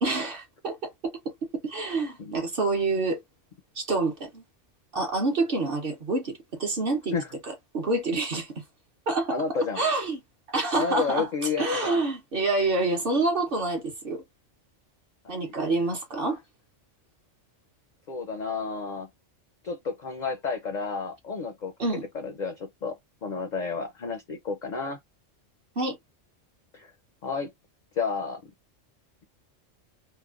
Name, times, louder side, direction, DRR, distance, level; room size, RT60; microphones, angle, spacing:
voice 1, 0.0-3.2 3.8-4.4 4.9-7.1 7.7-8.5 9.1-9.4 9.8-10.2 10.5-11.3 11.6-14.2 15.3-16.4 21.8-22.0 25.8-26.0, right 3 dB, 55° right, 0.8 m, -27 dB
voice 2, 9.3-9.8 10.7-12.0 15.2-15.5 18.1-19.1 19.6-21.7 22.1-25.0 26.7-26.9 27.2-27.5 27.9-28.5, left 5 dB, 65° left, 0.4 m, -31 dB
3.1 x 2.0 x 2.2 m
omnidirectional pair, 1.3 m